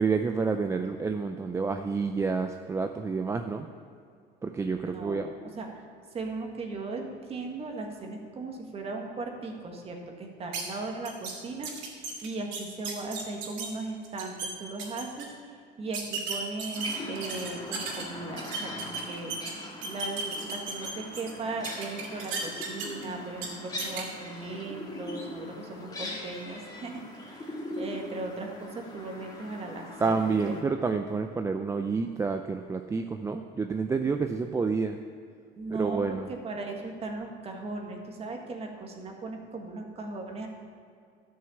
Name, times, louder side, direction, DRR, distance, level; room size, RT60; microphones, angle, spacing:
voice 1, 0.0-3.7 4.4-5.3 30.0-35.0 35.7-36.3, right 4 dB, 15° right, 6 dB, 0.4 m, -29 dB
voice 2, 4.6-5.9 6.1-30.6 35.6-40.5, right 3 dB, 30° right, 2 dB, 1.8 m, -38 dB
sound 1, 10.5-10.6 11.0-11.3 11.6-13.7 14.0-14.5 14.8-15.2 15.9-18.0 18.4-19.5 19.8-21.3 21.6-23.0 23.4-23.5 23.8-24.0, right 5 dB, 70° right, 2.6 m, -35 dB
sound 2, 16.7-30.6, left 1 dB, 20° left, 1.9 m, -41 dB
12.5 x 6.5 x 7.0 m, 2.3 s
cardioid pair, 130°, 20 cm